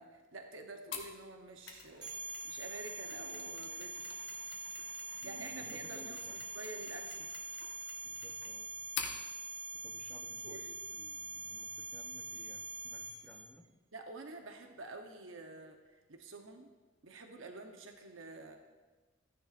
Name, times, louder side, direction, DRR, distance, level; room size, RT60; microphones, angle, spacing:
voice 1, 0.0-2.1 2.4-4.2 5.2-7.3 10.4-10.6 13.9-16.7 17.0-18.6, right 2 dB, 80° right, 4 dB, 0.9 m, -49 dB
Mechanisms, 0.9-9.2, left 6 dB, 65° left, 1.2 m, -48 dB
sound 1, 2.0-13.4, right 2 dB, 20° right, 2.9 m, -44 dB
voice 2, 5.2-6.4 8.0-8.7 9.7-13.7, left 1 dB, 5° left, 1 dB, 0.8 m, -58 dB
14.5 x 10.0 x 2.5 m, 1.3 s
head